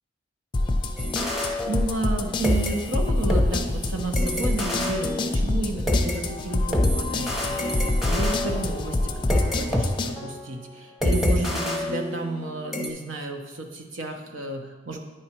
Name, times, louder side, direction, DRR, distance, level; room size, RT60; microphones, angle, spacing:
sound 1, 0.5-10.1, left 2 dB, 25° left, 0.5 m, -27 dB
sound 2, 1.0-2.2 2.4-6.2 6.7-9.8 10.2-10.4 11.0-12.4 12.7-12.9, left 1 dB, ahead, 0.8 m, -27 dB
voice 1, 1.3-15.0, right 2 dB, 90° right, 3 dB, 1.0 m, -32 dB
9.3 x 5.0 x 4.4 m, 1.3 s
head